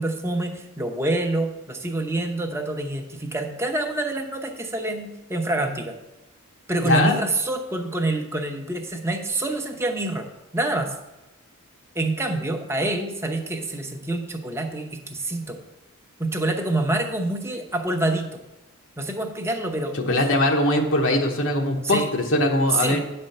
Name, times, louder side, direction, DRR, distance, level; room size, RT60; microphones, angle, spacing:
voice 1, 0.0-6.0 6.7-10.3 10.5-10.9 11.9-15.6 16.2-18.3 19.0-20.3 21.8-22.1 22.7-23.0, right 2 dB, 10° right, 3 dB, 0.8 m, -26 dB
voice 2, 6.8-7.2 20.1-23.0, left 1 dB, 60° left, 1 dB, 1.0 m, -21 dB
9.4 x 4.3 x 6.6 m, 0.97 s
head